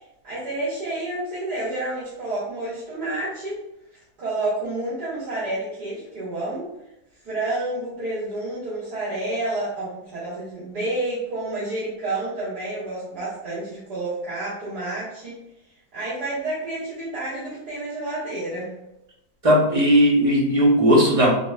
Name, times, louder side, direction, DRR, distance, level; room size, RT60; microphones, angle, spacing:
voice 1, 0.2-3.6 4.2-6.7 7.2-15.4 15.9-18.7, right 2 dB, 90° right, -13 dB, 2.1 m, -29 dB
voice 2, 19.4-21.3, equal, 35° right, -3 dB, 0.6 m, -17 dB
4.0 x 3.4 x 2.3 m, 0.88 s
omnidirectional pair, 1.7 m